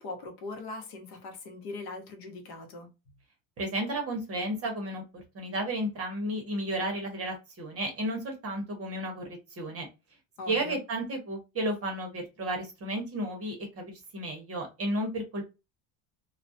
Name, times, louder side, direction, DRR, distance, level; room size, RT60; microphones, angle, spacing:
voice 1, 0.0-2.9 10.4-10.8, left 3 dB, 60° left, 0.9 m, -40 dB
voice 2, 3.6-5.0 5.3-9.2 9.6-9.9 10.5-15.5, right 1 dB, 30° right, 0.7 m, -33 dB
2.2 x 2.1 x 2.6 m
cardioid pair, 135°, 49 cm